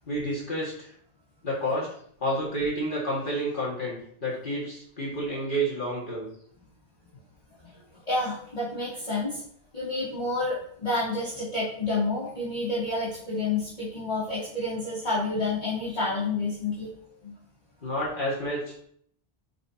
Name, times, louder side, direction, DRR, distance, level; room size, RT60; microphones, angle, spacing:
voice 1, 0.1-0.9 1.4-1.9 2.2-6.3 17.8-18.8, right 1 dB, 55° left, -5 dB, 2.1 m, -30 dB
voice 2, 8.1-9.4 9.7-16.9 17.2-17.3, left 2 dB, 40° left, -13 dB, 2.8 m, -29 dB
10.0 x 5.1 x 2.8 m, 0.62 s
omnidirectional pair, 1.0 m